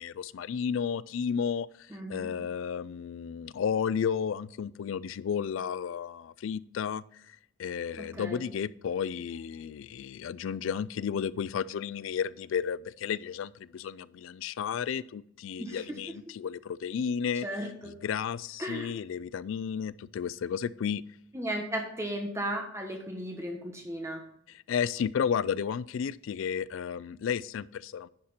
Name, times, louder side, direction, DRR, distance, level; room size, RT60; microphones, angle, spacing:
voice 1, 0.0-17.5 17.8-21.0 24.5-28.1, left 7 dB, 65° left, 18 dB, 0.3 m, -33 dB
voice 2, 1.9-2.3 8.0-8.5 15.6-15.8 17.4-17.7 18.6-18.9 21.3-24.2, right 1 dB, 15° right, 2 dB, 1.2 m, -35 dB
10.0 x 5.1 x 4.2 m, 0.71 s
head